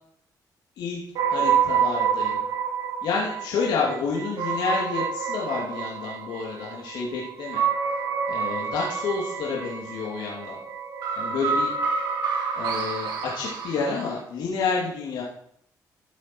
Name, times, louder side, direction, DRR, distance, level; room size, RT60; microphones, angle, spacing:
sound 1, 1.1-14.2, right 6 dB, 85° right, 2.6 m, -28 dB
voice 1, 1.3-2.4 3.0-7.6 8.3-10.6 11.2-11.7 12.6-15.2, left 5 dB, 85° left, -4 dB, 2.7 m, -29 dB
14.5 x 7.5 x 4.7 m, 0.68 s
cardioid pair, 85°, 7 cm